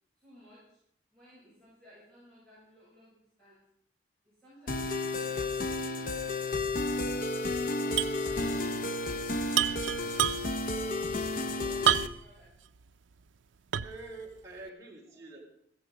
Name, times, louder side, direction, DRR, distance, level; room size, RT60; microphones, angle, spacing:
voice 1, 0.2-0.8 1.1-3.1 3.4-3.6 4.2-5.5 7.7-8.6 10.0-12.5, equal, 5° left, -11 dB, 7.3 m, -58 dB
sound 1, 4.7-12.1, left 2 dB, 45° left, 0.7 m, -32 dB
sound 2, 8.0-8.2 8.5-8.6 9.5-10.7 11.9-12.4 12.9-13.0 13.7-14.1, right 10 dB, 75° right, 0.5 m, -28 dB
voice 2, 13.8-15.4, right 3 dB, 15° right, -3 dB, 3.8 m, -46 dB
15.0 x 15.0 x 5.1 m, 0.70 s
head